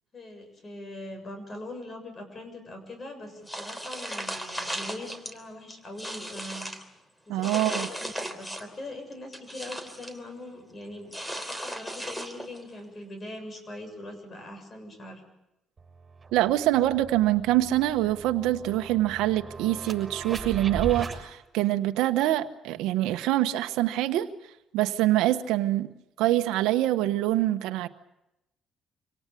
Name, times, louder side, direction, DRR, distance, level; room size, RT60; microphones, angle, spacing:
voice 1, 0.1-6.7 7.3-11.1 11.5-15.2, left 1 dB, 40° left, 7 dB, 7.0 m, -42 dB
sound 1, 3.5-5.3 5.7-6.8 7.4-8.8 9.1-10.2 11.1-12.6, equal, 10° left, 3.3 m, -36 dB
voice 2, 7.3-7.9 16.3-24.3 24.7-25.9 26.2-27.9, right 14 dB, 90° right, 7 dB, 1.1 m, -25 dB
sound 2, 15.8-15.9 16.2-21.2, right 4 dB, 30° right, 6.8 m, -38 dB
26.0 x 18.5 x 8.4 m, 0.87 s
cardioid pair, 85°, 0 cm